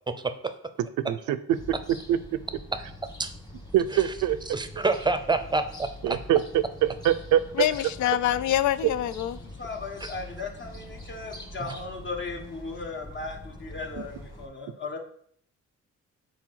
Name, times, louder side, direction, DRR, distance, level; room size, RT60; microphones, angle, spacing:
voice 1, 1.0-1.8 2.1-2.2 3.7-4.4 6.0-7.7 14.0-14.1, right 11 dB, 75° right, 0.5 m, -24 dB
sound 1, 1.5-14.5, left 1 dB, 15° left, 1.6 m, -44 dB
voice 2, 4.5-6.2 11.6-11.8, right 3 dB, 15° right, 0.6 m, -27 dB
voice 3, 7.6-9.4, left 12 dB, 70° left, 0.5 m, -25 dB
voice 4, 9.6-15.0, left 3 dB, 40° left, 1.3 m, -37 dB
4.8 x 4.2 x 5.7 m
cardioid pair, 90°, 30 cm